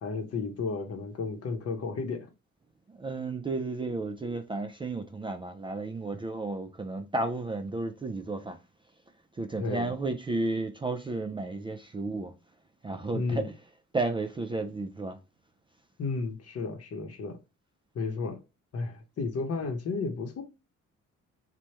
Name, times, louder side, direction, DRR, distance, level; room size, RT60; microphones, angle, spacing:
voice 1, 0.0-2.3 9.6-9.9 13.1-13.5 16.0-17.4 17.9-18.4 18.7-20.4, left 4 dB, 55° left, 0.8 m, -33 dB
voice 2, 2.9-8.6 9.4-12.3 12.8-13.5 13.9-15.2, right 3 dB, 20° right, 0.3 m, -33 dB
3.2 x 2.2 x 2.8 m
cardioid pair, 90°, 30 cm